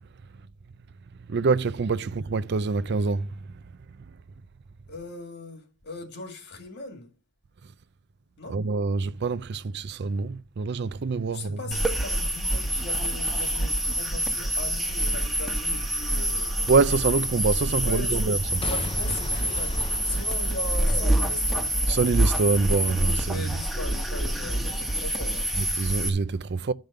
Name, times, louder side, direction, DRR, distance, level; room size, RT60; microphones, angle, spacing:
voice 1, 1.3-3.3 8.5-11.8 16.7-18.6 21.9-23.5 25.5-26.7, right 4 dB, 55° right, 0.5 m, -25 dB
voice 2, 4.9-7.1 8.4-8.6 11.3-16.6 17.8-18.2 18.5-21.7 23.2-25.5, left 2 dB, 55° left, 2.1 m, -39 dB
sound 1, 11.7-26.1, right 1 dB, ahead, 1.1 m, -26 dB
Boom / Shatter / Crushing, 18.6-22.6 23.1-23.2, left 3 dB, 25° left, 0.5 m, -38 dB
11.5 x 5.3 x 6.7 m
head